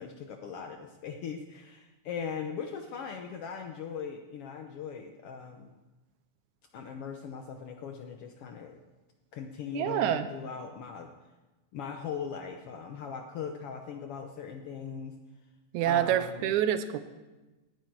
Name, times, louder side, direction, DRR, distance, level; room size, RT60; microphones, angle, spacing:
voice 1, 0.0-5.7 6.7-8.8 9.3-11.1 11.7-15.2 15.8-16.5, left 6 dB, 70° left, 5 dB, 1.4 m, -40 dB
voice 2, 9.7-10.3 15.7-17.0, right 10 dB, 85° right, 11 dB, 2.1 m, -27 dB
18.0 x 10.0 x 4.6 m, 1.1 s
omnidirectional pair, 3.5 m